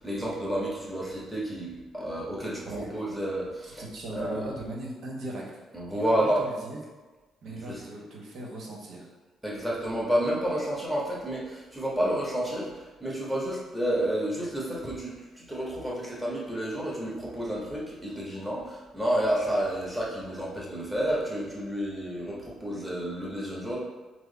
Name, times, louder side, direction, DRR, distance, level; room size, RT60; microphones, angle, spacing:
voice 1, 0.0-3.8 4.1-4.5 5.7-6.4 7.5-7.8 9.4-12.7 13.0-23.8, right 1 dB, 5° right, -5 dB, 1.3 m, -30 dB
voice 2, 3.6-5.6 5.9-6.8 7.4-9.1, right 1 dB, 70° right, -2 dB, 1.0 m, -38 dB
4.7 x 2.1 x 4.0 m, 1.3 s
cardioid pair, 90°, 0 cm